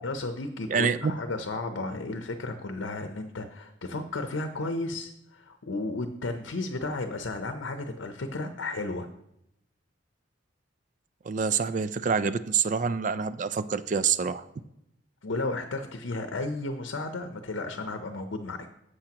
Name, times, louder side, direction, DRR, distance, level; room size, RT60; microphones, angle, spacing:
voice 1, 0.0-9.1 15.2-18.6, left 2 dB, 80° left, 7 dB, 0.7 m, -33 dB
voice 2, 0.7-1.1 11.3-14.4, right 6 dB, 40° right, 14 dB, 0.4 m, -26 dB
12.0 x 7.9 x 2.9 m, 0.81 s
head